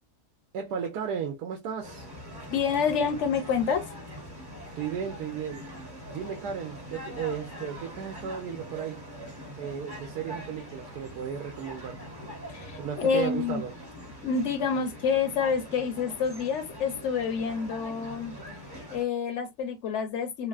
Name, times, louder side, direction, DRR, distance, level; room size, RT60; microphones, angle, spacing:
voice 1, 0.5-2.1 4.8-5.6 6.1-9.0 9.6-12.0 12.8-13.7, right 7 dB, 80° right, 1.2 m, -34 dB
sound 1, 1.8-19.0, equal, 20° right, 0.8 m, -43 dB
voice 2, 2.5-3.9 12.5-13.6 14.2-18.4 18.9-20.5, left 6 dB, 55° left, 0.9 m, -28 dB
3.4 x 2.2 x 2.4 m
omnidirectional pair, 1.7 m